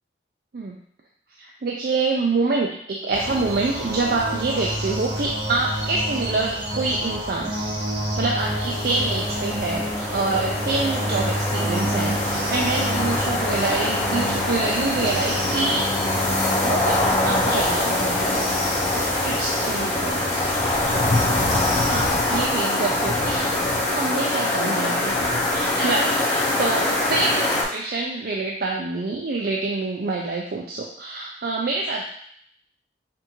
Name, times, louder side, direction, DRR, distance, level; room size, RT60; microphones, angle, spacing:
voice 1, 1.4-7.5 7.9-9.9 10.1-16.3 16.6-18.4 18.9-20.5 21.9-25.2 25.4-32.0, right 3 dB, 55° right, -1 dB, 0.4 m, -26 dB
sound 1, 3.1-22.4, right 1 dB, 90° right, 1.5 m, -30 dB
sound 2, 8.4-27.6, left 2 dB, 40° left, 0.9 m, -24 dB
5.8 x 2.6 x 3.0 m, 0.67 s
head